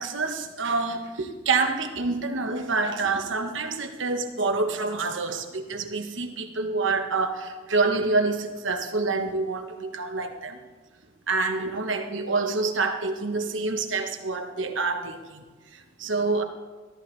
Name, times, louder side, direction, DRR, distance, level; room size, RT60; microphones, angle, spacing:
voice 1, 0.0-10.6 11.3-15.4 15.7-16.4, right 3 dB, 75° right, 6 dB, 1.1 m, -27 dB
13.5 x 13.0 x 3.3 m, 1.3 s
head